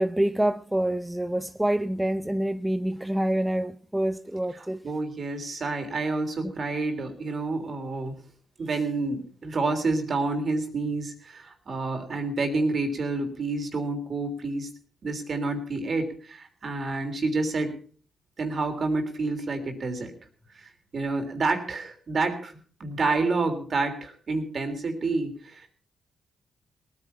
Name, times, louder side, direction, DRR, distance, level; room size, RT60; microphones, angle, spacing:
voice 1, 0.0-4.8 6.4-6.5, right 1 dB, 10° right, 0.7 m, -26 dB
voice 2, 4.6-8.2 8.6-14.7 15.0-17.7 18.4-20.1 20.5-25.7, right 3 dB, 55° right, 3.4 m, -29 dB
18.5 x 9.9 x 5.6 m
supercardioid pair, 50°, 0 cm